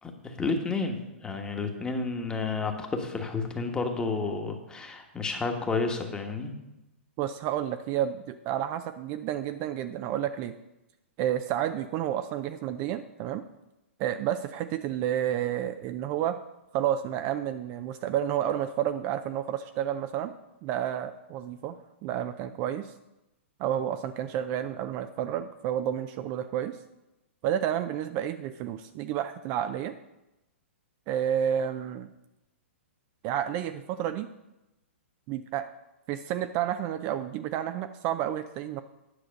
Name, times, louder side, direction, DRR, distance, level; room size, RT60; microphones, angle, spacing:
voice 1, 0.0-6.5, left 4 dB, 10° left, 4 dB, 1.2 m, -31 dB
voice 2, 7.2-10.5 11.2-13.4 14.0-16.4 16.7-20.3 20.6-22.9 23.6-26.8 27.4-29.9 31.1-32.1 33.2-34.3 35.3-35.7 36.1-38.8, right 10 dB, 35° right, 9 dB, 0.4 m, -30 dB
10.0 x 6.2 x 5.2 m, 0.95 s
hypercardioid pair, 125°, 7 cm